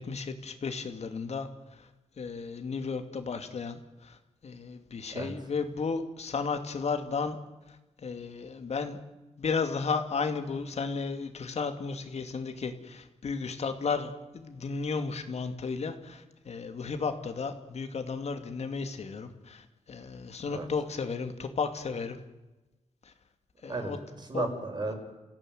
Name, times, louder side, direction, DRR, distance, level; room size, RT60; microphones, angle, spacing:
voice 1, 0.0-1.5 1.8-1.9 2.2-4.2 4.4-7.4 8.0-9.0 9.4-22.2 23.6-24.0 24.3-24.5, left 5 dB, 60° left, 7 dB, 2.6 m, -34 dB
voice 2, 23.7-25.0, right 2 dB, 35° right, 5 dB, 5.8 m, -34 dB
29.0 x 16.5 x 9.4 m, 1.1 s
wide cardioid pair, 115°, 12 cm